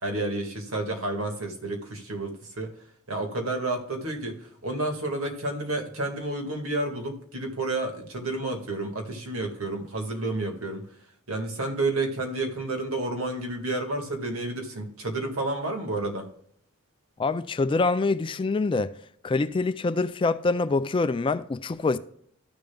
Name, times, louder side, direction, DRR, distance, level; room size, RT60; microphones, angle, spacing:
voice 1, 0.0-2.7 3.1-10.9 11.3-16.3, right 2 dB, 80° right, 2.0 m, -30 dB
voice 2, 17.2-18.9 19.2-22.0, left 3 dB, 25° left, 0.3 m, -25 dB
14.0 x 6.8 x 2.3 m
head